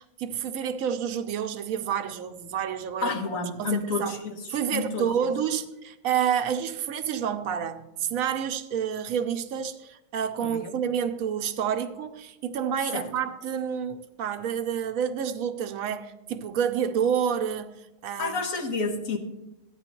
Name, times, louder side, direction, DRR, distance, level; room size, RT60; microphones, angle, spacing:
voice 1, 0.0-3.2 3.6-4.2 4.5-18.3, right 8 dB, 80° right, 1.0 m, -29 dB
voice 2, 3.0-5.3 10.4-10.7 12.9-13.1 18.2-19.2, left 4 dB, 70° left, 1.5 m, -30 dB
14.0 x 9.6 x 3.0 m
omnidirectional pair, 1.5 m